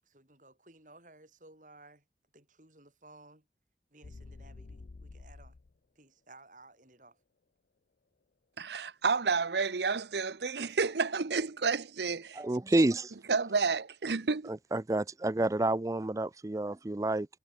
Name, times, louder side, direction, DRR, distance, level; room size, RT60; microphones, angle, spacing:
voice 1, 0.0-2.1 2.3-3.5 3.9-5.6 6.0-7.2, right 2 dB, 45° right, 7.4 m, -57 dB
sound 1, 4.0-5.7, left 3 dB, 55° left, 0.5 m, -49 dB
voice 2, 8.6-12.4 13.3-14.5, right 4 dB, 75° right, 0.8 m, -30 dB
voice 3, 12.4-13.1 14.5-17.3, right 2 dB, 20° right, 0.4 m, -29 dB
head